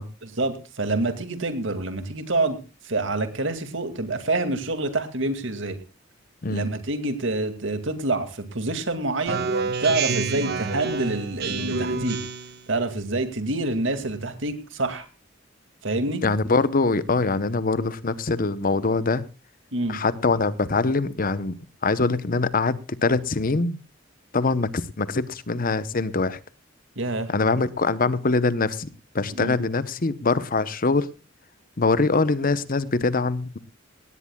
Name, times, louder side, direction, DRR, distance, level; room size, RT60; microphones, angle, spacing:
voice 1, 0.2-2.6 2.8-5.8 6.5-9.4 9.8-12.2 12.7-15.1 15.8-16.2 19.7-20.0 27.0-27.3 29.3-29.6, right 2 dB, 75° right, 9 dB, 2.3 m, -27 dB
Speech synthesizer, 9.3-12.6, right 4 dB, 55° right, 1.3 m, -28 dB
voice 2, 16.2-19.2 19.9-21.5 21.8-23.8 24.3-26.4 27.3-28.9 29.1-31.1 31.8-33.6, left 3 dB, 45° left, 16 dB, 0.8 m, -23 dB
18.0 x 17.0 x 2.3 m, 0.31 s
head